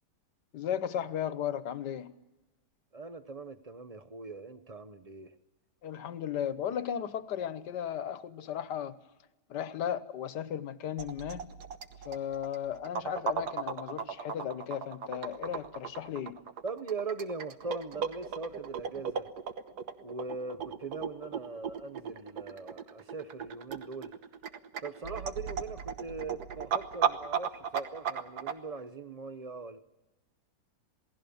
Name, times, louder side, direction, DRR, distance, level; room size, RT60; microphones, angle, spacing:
voice 1, 0.5-2.1 5.8-9.0 9.5-11.5 12.0-16.4, left 9 dB, 80° left, 1.6 m, -35 dB
voice 2, 2.9-5.3 16.6-19.3 20.0-24.2 24.8-29.8, right 4 dB, 30° right, 0.7 m, -40 dB
sound 1, 11.0-28.5, right 7 dB, 70° right, 1.7 m, -36 dB
28.0 x 18.5 x 7.1 m
omnidirectional pair, 1.8 m